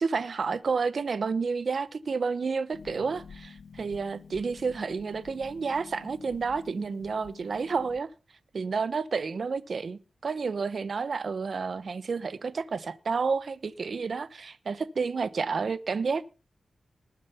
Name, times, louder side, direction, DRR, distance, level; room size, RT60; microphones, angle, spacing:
voice 1, 0.0-8.1 8.5-16.3, right 5 dB, 60° right, 1.1 m, -30 dB
Harp, 2.7-8.0, left 5 dB, 80° left, 1.1 m, -49 dB
19.5 x 7.4 x 5.7 m
wide cardioid pair, 85°, 0 cm